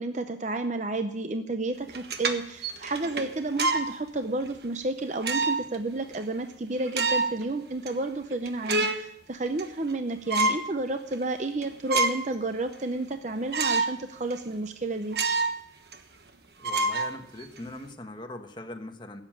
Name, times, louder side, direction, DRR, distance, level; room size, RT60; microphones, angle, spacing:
voice 1, 0.0-15.2, right 2 dB, 40° right, 8 dB, 0.6 m, -31 dB
sound 1, 1.9-3.9 4.4-4.6 5.2-5.8 6.1-6.2 6.8-7.4 7.9-8.0 8.3-9.1 9.5-10.0 10.3-10.7 11.1-11.2 11.6-12.3 12.7-12.8 13.5-14.0 14.3-14.4 15.1-15.6 15.9-16.0 16.6-17.6, right 3 dB, 60° right, 1.3 m, -27 dB
voice 2, 16.6-19.2, left 2 dB, 25° left, 5 dB, 1.2 m, -41 dB
16.0 x 7.4 x 8.8 m, 0.81 s
head